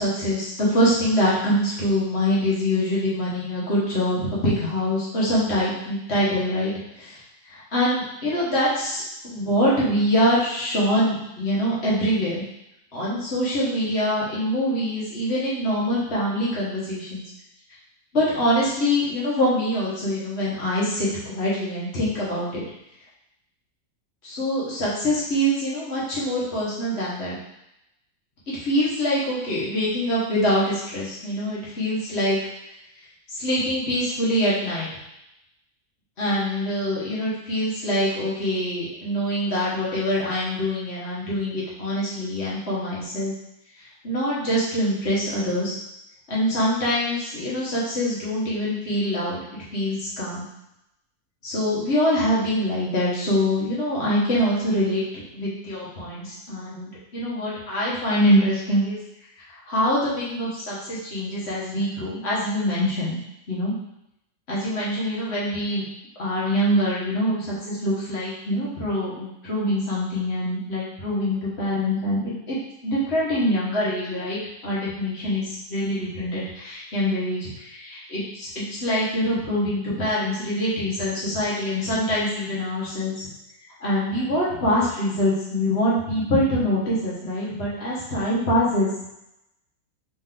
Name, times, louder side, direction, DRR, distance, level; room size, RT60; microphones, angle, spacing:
voice 1, 0.0-7.2 7.5-12.4 12.9-17.2 18.1-22.6 24.2-27.4 28.5-32.4 33.3-34.9 36.2-43.3 44.0-45.7 46.3-49.4 49.7-50.4 51.4-59.0 59.7-63.2 63.5-63.7 64.5-65.8 66.2-83.3 83.8-88.9, equal, 45° left, -7 dB, 1.6 m, -24 dB
4.2 x 3.4 x 3.7 m, 0.85 s
omnidirectional pair, 1.6 m